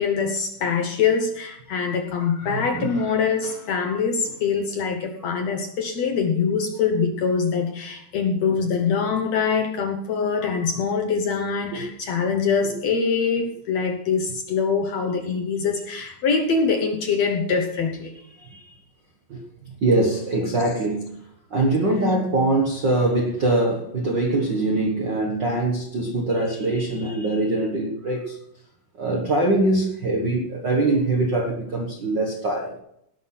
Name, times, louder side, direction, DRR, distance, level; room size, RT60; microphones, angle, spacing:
voice 1, 0.0-18.1 21.9-22.1, left 5 dB, 65° left, 4 dB, 1.8 m, -24 dB
voice 2, 2.4-3.0 3.4-3.5 10.4-10.7 11.7-11.9 12.6-12.7 18.3-18.7 19.3-19.4 19.8-21.1 21.5-28.4 28.9-32.8, right 2 dB, 55° right, 0 dB, 1.2 m, -23 dB
18.0 x 6.1 x 5.7 m, 0.74 s
omnidirectional pair, 4.0 m